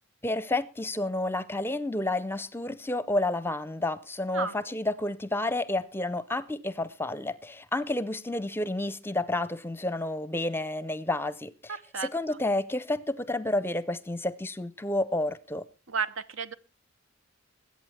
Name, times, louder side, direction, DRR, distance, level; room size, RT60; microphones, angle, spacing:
voice 1, 0.2-11.7 12.0-15.6, left 2 dB, 10° left, 0.6 m, -30 dB
voice 2, 11.7-12.4 15.9-16.5, right 5 dB, 75° right, 1.0 m, -33 dB
21.0 x 8.6 x 4.3 m
head